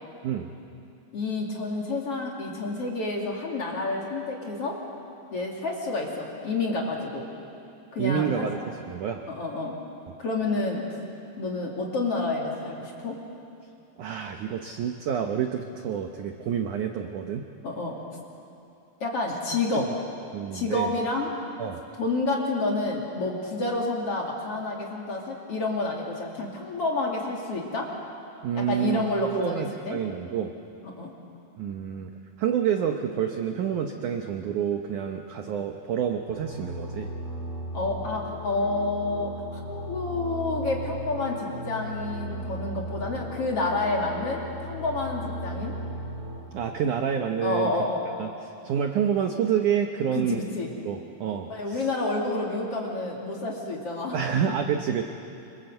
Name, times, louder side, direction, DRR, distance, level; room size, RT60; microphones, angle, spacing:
voice 1, 1.1-4.8 5.3-7.3 7.9-8.5 9.3-9.8 10.2-10.8 11.4-13.2 17.6-18.0 19.0-19.9 20.5-21.3 22.0-27.9 28.5-30.0 30.8-31.1 37.7-45.7 47.4-48.0 50.1-50.7 51.5-54.2 54.5-54.6, left 2 dB, 40° left, -1 dB, 2.9 m, -29 dB
voice 2, 8.0-9.2 14.0-17.4 19.7-19.9 20.3-20.9 21.6-21.8 28.4-30.5 31.6-32.1 32.4-37.1 46.5-47.7 48.2-48.3 48.6-50.4 50.9-51.9 54.1-55.0, right 8 dB, 80° right, 4 dB, 1.7 m, -28 dB
sound 1, 36.3-46.4, equal, 20° left, 7.1 m, -36 dB
26.0 x 25.5 x 7.9 m, 2.7 s
omnidirectional pair, 5.1 m